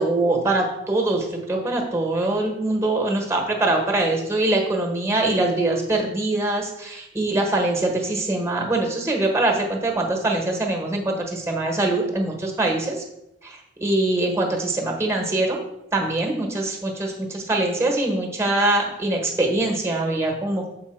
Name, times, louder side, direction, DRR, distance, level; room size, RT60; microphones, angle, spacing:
voice 1, 0.0-13.0 13.4-15.6 15.9-20.7, right 2 dB, 15° right, 2 dB, 1.1 m, -23 dB
7.1 x 4.5 x 4.5 m, 0.86 s
head